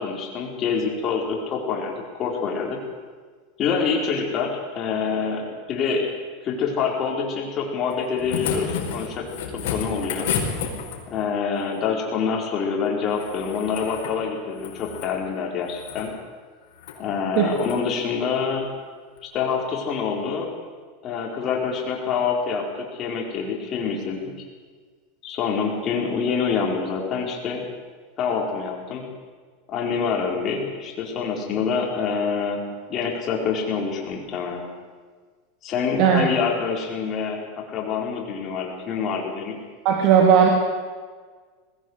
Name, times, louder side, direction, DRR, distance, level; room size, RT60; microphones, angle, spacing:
voice 1, 0.0-2.8 3.6-6.1 6.4-9.3 9.7-10.3 11.1-16.1 16.9-18.7 19.2-20.5 21.0-24.2 25.2-27.7 28.2-29.1 29.7-32.6 32.9-34.6 35.6-39.5, left 5 dB, 35° left, 0 dB, 4.6 m, -26 dB
sound 1, 7.9-11.2 13.1-14.2 14.5-15.1 15.7-16.1 16.8-17.0 17.5-17.8 19.2-19.3, left 6 dB, 70° left, 4.7 m, -31 dB
voice 2, 39.8-40.5, right 7 dB, 50° right, 2 dB, 2.6 m, -16 dB
20.0 x 16.0 x 8.2 m, 1.5 s
supercardioid pair, 140°, 0 cm